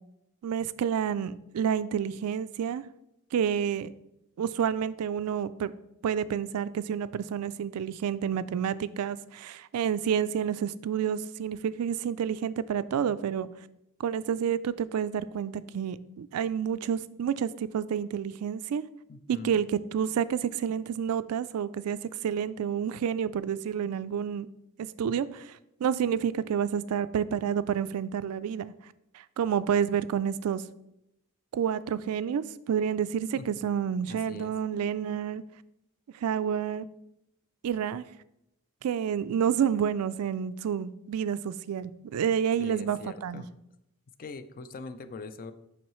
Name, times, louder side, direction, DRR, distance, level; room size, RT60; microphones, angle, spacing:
voice 1, 0.4-2.8 3.3-3.9 4.4-5.7 6.0-13.5 14.0-18.8 19.3-19.7 19.9-22.0 22.2-24.5 24.8-28.7 29.1-30.6 31.5-35.4 36.2-36.9 37.6-38.0 38.8-43.4, right 8 dB, 90° right, 16 dB, 0.3 m, -29 dB
voice 2, 19.1-19.7 33.4-33.5 34.1-34.5 42.6-43.5 44.2-45.5, left 3 dB, 40° left, 11 dB, 0.4 m, -42 dB
7.2 x 5.5 x 3.1 m, 0.85 s
head